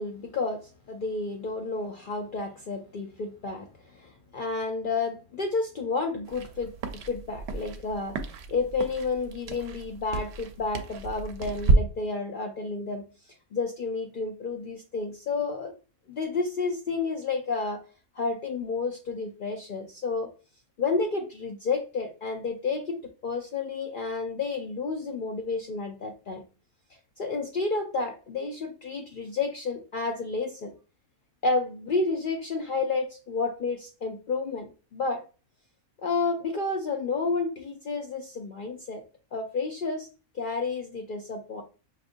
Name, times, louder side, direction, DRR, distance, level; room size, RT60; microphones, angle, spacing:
voice 1, 0.0-6.7 7.1-13.0 13.5-15.7 16.1-17.8 18.2-20.3 20.8-26.4 27.2-30.7 31.4-35.2 36.0-39.0 39.3-40.1 40.3-41.6, left 4 dB, 55° left, 3 dB, 0.6 m, -31 dB
sound 1, 6.3-11.8, right 3 dB, 65° right, 0.8 m, -30 dB
5.9 x 2.5 x 2.5 m, 0.34 s
omnidirectional pair, 1.3 m